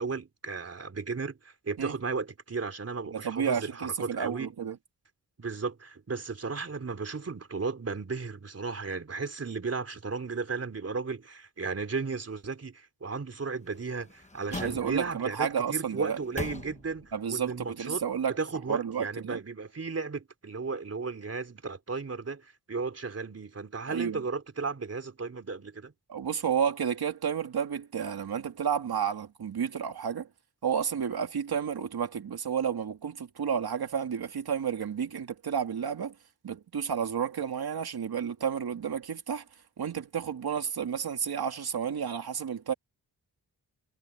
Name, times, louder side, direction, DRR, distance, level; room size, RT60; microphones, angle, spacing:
voice 1, 0.0-4.5 5.4-18.0 18.3-25.9, right 4 dB, 40° right, 3.6 m, -35 dB
voice 2, 3.1-4.8 14.5-16.2 17.1-18.4 18.7-19.4 23.9-24.2 26.1-30.3 30.6-36.1 36.4-39.4 39.8-42.7, right 7 dB, 70° right, 2.4 m, -31 dB
sound 1, 13.6-15.3 15.9-17.2 17.5-17.6, left 3 dB, 20° left, 1.0 m, -42 dB
wide cardioid pair, 145°, 39 cm